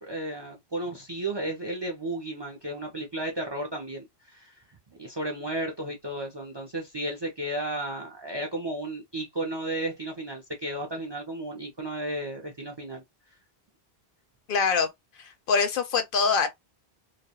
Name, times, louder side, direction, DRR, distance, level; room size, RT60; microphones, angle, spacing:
voice 1, 0.0-4.6 5.0-13.0, right 1 dB, 35° right, 0.4 m, -33 dB
voice 2, 14.5-14.9 15.2-16.5, left 5 dB, 65° left, 0.7 m, -24 dB
2.3 x 2.1 x 2.7 m
omnidirectional pair, 1.0 m